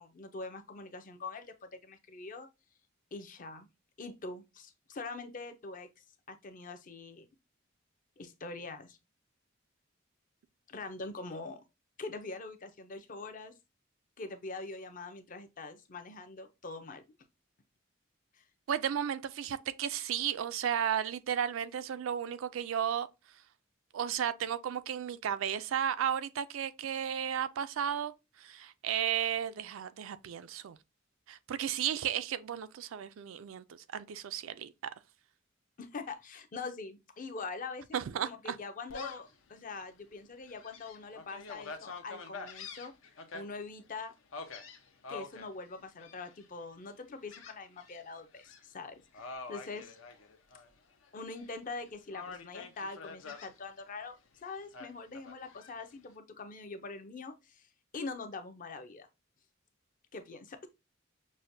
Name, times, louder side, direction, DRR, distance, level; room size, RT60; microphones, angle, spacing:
voice 1, 0.0-2.5 3.1-3.7 4.0-7.3 8.2-9.0 10.7-11.6 12.0-13.5 14.2-17.0 18.3-18.4 35.8-42.9 43.3-44.1 45.1-50.0 51.1-57.6 57.9-59.1 60.1-60.7, left 3 dB, 40° left, 0.5 m, -43 dB
voice 2, 18.7-23.1 23.9-28.1 28.4-30.8 31.3-33.6 33.9-34.9 37.9-38.6, right 9 dB, 85° right, 0.4 m, -34 dB
Gull seagull, 38.9-39.3 39.8-39.9 40.5-43.4 44.3-45.5 46.0-46.5 47.3-48.0 48.3-48.6 49.1-50.7 51.0-51.8 52.1-53.5 54.7-55.7, left 4 dB, 80° left, 0.7 m, -45 dB
6.1 x 2.1 x 2.6 m
head